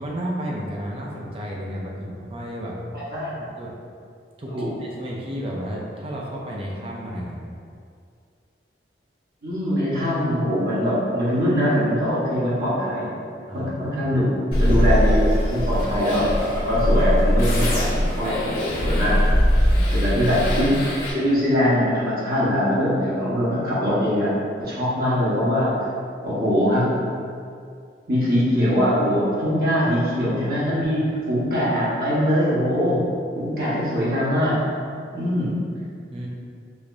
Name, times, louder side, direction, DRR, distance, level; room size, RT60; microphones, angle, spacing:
voice 1, 0.0-2.8 3.4-3.7 4.4-7.4 13.5-14.2 19.5-20.2 36.1-36.3, equal, 30° right, -2 dB, 0.6 m, -32 dB
voice 2, 9.4-13.1 13.5-19.3 19.9-20.7 21.1-24.3 24.6-25.7 26.2-26.9 28.1-33.0 33.3-34.6 35.1-35.6, equal, 55° right, -9 dB, 1.2 m, -22 dB
sound 1, 14.5-21.1, equal, 55° left, 1.2 m, -21 dB
5.0 x 3.5 x 2.6 m, 2.3 s
head